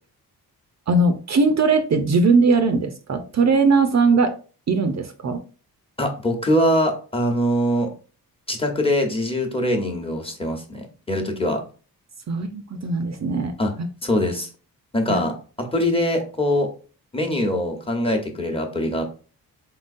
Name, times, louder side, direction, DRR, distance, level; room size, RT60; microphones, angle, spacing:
voice 1, 0.9-4.3 4.7-5.4 12.3-13.5 15.1-15.2, right 3 dB, 50° right, 7 dB, 0.6 m, -19 dB
voice 2, 6.0-7.9 8.5-11.6 13.6-13.7 14.0-14.5 14.9-16.7 17.1-19.0, left 1 dB, 15° left, 2 dB, 1.0 m, -23 dB
4.6 x 3.7 x 2.6 m, 0.37 s
wide cardioid pair, 130°, 37 cm